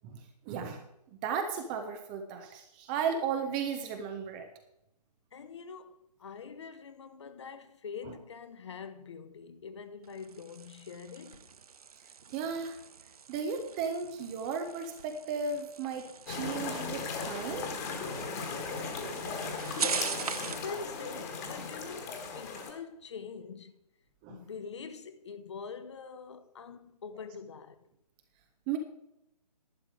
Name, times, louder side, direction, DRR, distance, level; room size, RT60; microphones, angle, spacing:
voice 1, 0.0-0.8 1.2-4.5 12.3-12.8 13.3-17.7 24.2-24.4 28.7-28.8, right 6 dB, 10° right, 0.5 m, -35 dB
voice 2, 5.3-11.5 19.8-23.7 24.3-27.8, left 5 dB, 45° left, 0.9 m, -44 dB
sound 1, 10.0-20.7, right 6 dB, 65° right, 0.5 m, -42 dB
sound 2, 16.3-22.7, left 4 dB, 25° left, 1.5 m, -37 dB
11.0 x 9.7 x 4.8 m
figure-of-eight pair, 140°, 21 cm